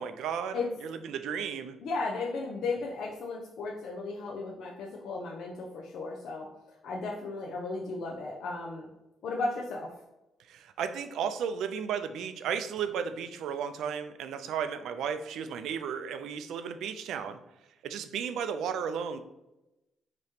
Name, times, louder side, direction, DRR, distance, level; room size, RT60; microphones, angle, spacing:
voice 1, 0.0-1.8 10.5-17.4 17.8-19.2, right 7 dB, 80° right, 10 dB, 0.4 m, -34 dB
voice 2, 1.8-6.5 6.8-8.9 9.2-9.9, left 3 dB, 75° left, -1 dB, 0.6 m, -35 dB
4.8 x 2.9 x 2.8 m, 0.96 s
cardioid pair, 90°, 0 cm